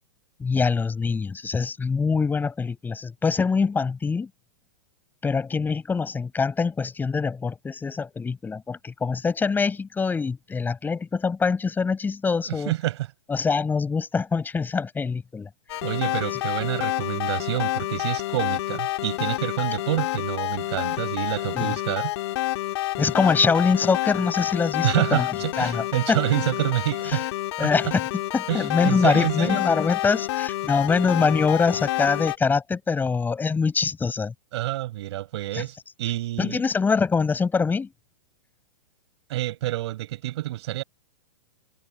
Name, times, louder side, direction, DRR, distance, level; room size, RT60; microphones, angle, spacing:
voice 1, 0.4-4.3 5.2-12.7 13.3-15.5 21.5-21.7 23.0-25.3 25.6-26.2 27.1-27.2 27.6-27.9 28.3-34.3 35.5-35.6 36.4-37.9, left 5 dB, 10° left, 5.5 m, -24 dB
voice 2, 12.5-13.1 15.8-22.1 24.8-27.3 27.6-27.9 28.5-29.6 34.5-36.6 39.3-40.8, right 15 dB, 55° right, 5.8 m, -28 dB
sound 1, 15.7-32.4, left 16 dB, 50° left, 2.2 m, -28 dB
hypercardioid pair, 135°, 17 cm